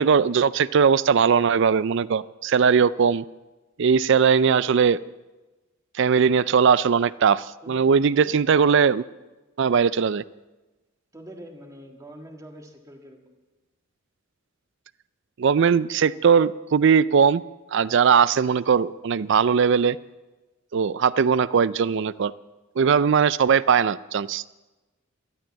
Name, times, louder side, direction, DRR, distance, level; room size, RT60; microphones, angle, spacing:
voice 1, 0.0-3.2 3.8-5.0 6.0-9.0 9.6-10.2 15.4-17.4 17.7-20.0 20.7-22.3 22.8-24.4, right 6 dB, 60° right, 19 dB, 0.4 m, -19 dB
voice 2, 7.6-8.4 11.1-13.4, right 1 dB, 15° right, 3 dB, 1.7 m, -44 dB
13.5 x 13.0 x 7.4 m, 1.1 s
head